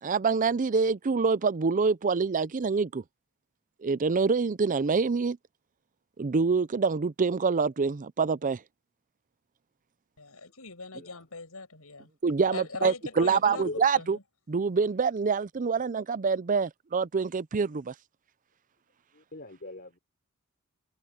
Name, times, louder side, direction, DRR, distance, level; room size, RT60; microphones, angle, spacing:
voice 1, 0.0-3.0 3.8-5.4 6.2-8.6 12.2-14.2 14.5-17.9, right 5 dB, 35° right, 0.5 m, -26 dB
voice 2, 10.2-12.1 12.5-13.7 13.9-14.2, left 3 dB, 80° left, 6.9 m, -39 dB
voice 3, 11.0-11.3 13.1-13.8 19.1-20.0, left 2 dB, 45° left, 4.1 m, -42 dB
head